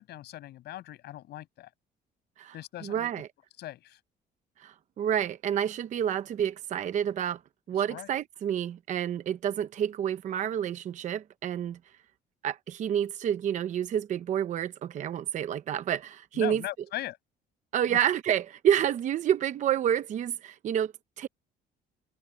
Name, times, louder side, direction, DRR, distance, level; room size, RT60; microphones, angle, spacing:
voice 1, 0.0-1.7 2.5-3.2 3.6-4.0 7.7-8.1 16.3-17.2 17.9-18.0, left 14 dB, 70° left, 6.7 m, -39 dB
voice 2, 2.8-3.3 4.6-7.4 7.7-11.8 12.4-16.6 17.7-21.3, right 10 dB, 45° right, 0.8 m, -29 dB
cardioid pair, 155°, 18 cm